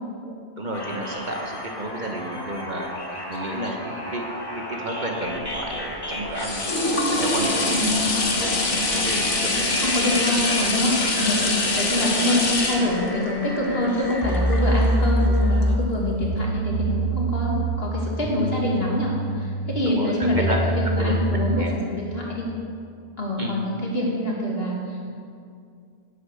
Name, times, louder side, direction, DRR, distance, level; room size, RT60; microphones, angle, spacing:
voice 1, 0.2-2.9 3.3-4.2 4.7-8.5 8.9-9.8 12.1-12.4 19.8-20.6 21.0-21.3 21.6-21.8 23.4-23.6, right 1 dB, 40° right, 1 dB, 1.3 m, -31 dB
sound 1, 0.7-15.7, equal, 20° left, 1.3 m, -34 dB
sound 2, 5.4-15.1 15.6-15.7, left 2 dB, 85° left, 1.8 m, -25 dB
voice 2, 7.7-8.1 9.8-22.5 23.2-25.1, left 1 dB, 55° left, -3 dB, 2.7 m, -25 dB
sound 3, 14.2-21.7, right 1 dB, 25° right, 0.9 m, -25 dB
11.0 x 8.4 x 8.1 m, 2.3 s
omnidirectional pair, 1.2 m